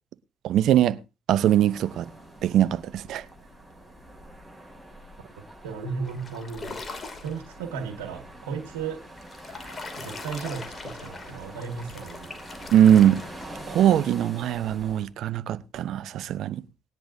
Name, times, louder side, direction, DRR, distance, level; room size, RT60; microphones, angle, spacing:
voice 1, 0.4-1.0 1.3-2.1 2.4-3.2 12.7-13.2 13.7-16.6, right 10 dB, 65° right, 0.6 m, -21 dB
sound 1, 1.4-15.1, right 1 dB, ahead, 6.9 m, -45 dB
voice 2, 5.6-6.8 7.2-9.0 9.5-12.3, right 5 dB, 80° right, 1.7 m, -35 dB
sound 2, 6.0-7.4 9.0-13.8, left 3 dB, 35° left, 2.5 m, -41 dB
19.5 x 10.0 x 2.7 m
hypercardioid pair, 50°, 0 cm